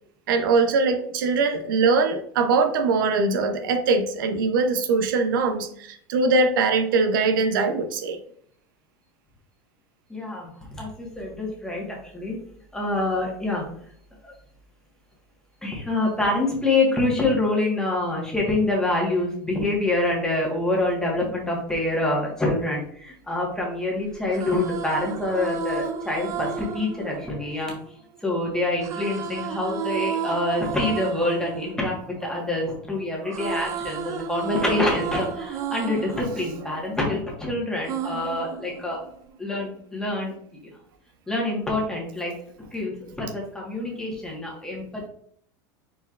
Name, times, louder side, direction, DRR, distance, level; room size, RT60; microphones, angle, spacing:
voice 1, 0.3-8.2 33.2-33.4 38.0-38.2, right 4 dB, 80° right, 7 dB, 0.6 m, -22 dB
voice 2, 10.1-10.5 10.8-12.4 12.7-13.6 14.2-14.3 15.6-27.7 28.2-39.0 39.4-40.3 41.3-42.3 42.7-45.1, left 2 dB, 5° left, -2 dB, 1.4 m, -26 dB
sound 1, 24.1-28.2 28.8-32.9 33.1-37.4 37.9-39.3, right 6 dB, 30° right, 0.5 m, -32 dB
4.3 x 4.3 x 2.5 m, 0.64 s
supercardioid pair, 135°, 11 cm